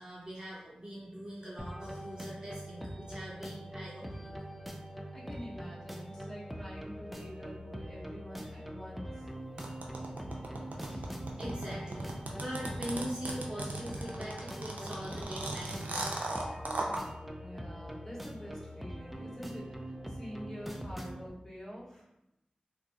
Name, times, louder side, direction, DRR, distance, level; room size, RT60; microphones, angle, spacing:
voice 1, 0.0-4.4 10.8-16.3 16.5-16.6, equal, 35° right, -6 dB, 1.0 m, -42 dB
sound 1, 1.6-21.3, equal, 5° right, 0.3 m, -43 dB
voice 2, 5.1-9.3 17.4-22.1, equal, 15° left, -8 dB, 1.2 m, -46 dB
sound 2, 9.6-17.0, right 2 dB, 90° right, 0.5 m, -37 dB
2.7 x 2.4 x 3.7 m, 0.87 s
wide cardioid pair, 65°, 3 cm